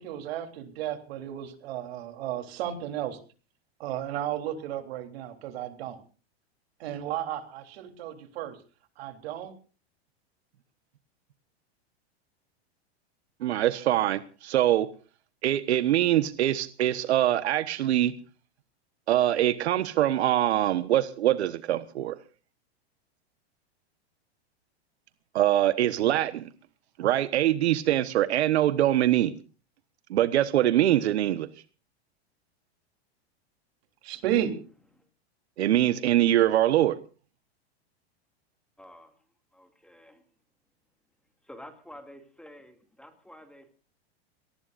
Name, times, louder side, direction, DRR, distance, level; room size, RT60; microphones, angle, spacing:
voice 1, 0.0-3.2 3.8-6.0 6.8-8.6 9.0-9.5 34.0-34.5, right 11 dB, 70° right, 6 dB, 3.6 m, -33 dB
voice 2, 13.4-14.9 15.4-18.1 19.1-22.1 25.3-26.5 27.0-29.3 30.1-31.5 35.6-37.0, right 13 dB, 85° right, 13 dB, 1.3 m, -23 dB
voice 3, 38.8-39.1 39.5-40.2 41.5-43.7, equal, 5° left, 6 dB, 2.4 m, -49 dB
27.0 x 19.0 x 2.6 m, 0.37 s
supercardioid pair, 140°, 32 cm